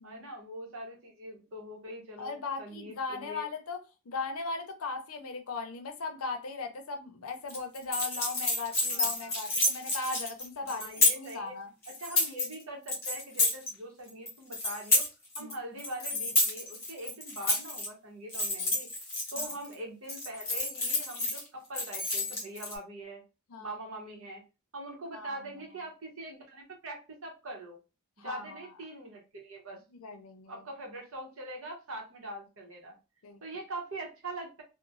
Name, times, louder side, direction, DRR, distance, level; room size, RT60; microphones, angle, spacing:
voice 1, 0.0-3.5 8.9-9.3 10.7-11.6 11.9-15.1 15.3-18.9 19.3-23.2 23.6-24.4 24.7-27.8 28.2-29.8 30.5-32.9 33.4-34.6, right 1 dB, 65° right, 0.9 m, -43 dB
voice 2, 2.2-3.8 4.0-10.9 11.1-11.7 15.4-15.5 19.3-19.5 23.5-23.8 25.1-25.5 28.2-28.6 29.9-30.6 33.2-33.4, left 4 dB, 75° left, 0.6 m, -38 dB
sound 1, 7.5-11.3 11.8-12.5 12.9-13.7 14.1-15.5 15.8-17.9 18.3-19.7 20.1-21.4 21.7-22.7, left 2 dB, 10° left, 1.0 m, -29 dB
2.9 x 2.1 x 2.5 m
head